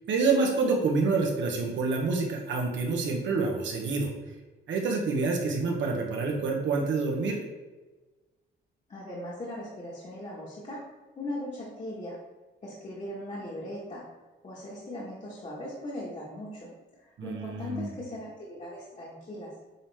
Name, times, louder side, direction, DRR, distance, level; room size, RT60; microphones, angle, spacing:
voice 1, 0.1-4.1 4.7-7.4 17.2-17.9, right 4 dB, 70° right, 0 dB, 1.4 m, -27 dB
voice 2, 8.9-10.8 11.1-12.2 12.6-14.0 14.4-19.5, left 1 dB, 35° left, -7 dB, 1.7 m, -39 dB
8.5 x 3.4 x 3.6 m, 1.2 s
cardioid pair, 90°, 20 cm